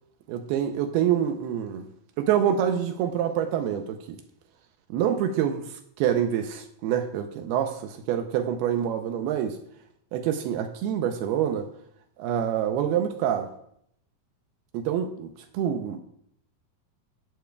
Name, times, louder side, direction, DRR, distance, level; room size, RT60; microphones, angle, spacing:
voice 1, 0.3-1.8 2.2-4.2 4.9-9.6 10.1-11.7 12.2-13.5 14.7-16.0, right 9 dB, 80° right, 6 dB, 2.6 m, -26 dB
12.5 x 11.0 x 2.3 m, 0.70 s
omnidirectional pair, 4.6 m